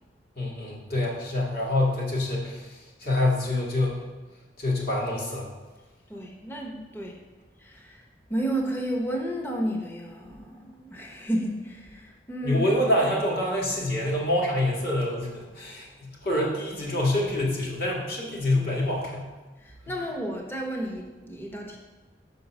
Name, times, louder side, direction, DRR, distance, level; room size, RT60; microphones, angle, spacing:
voice 1, 0.4-4.0 4.6-5.5 12.4-19.3, left 1 dB, 60° left, -4 dB, 1.8 m, -26 dB
voice 2, 6.1-7.2 7.6-8.0 8.3-12.6 19.6-21.8, right 1 dB, 10° left, 1 dB, 0.8 m, -32 dB
5.6 x 5.3 x 6.1 m, 1.2 s
head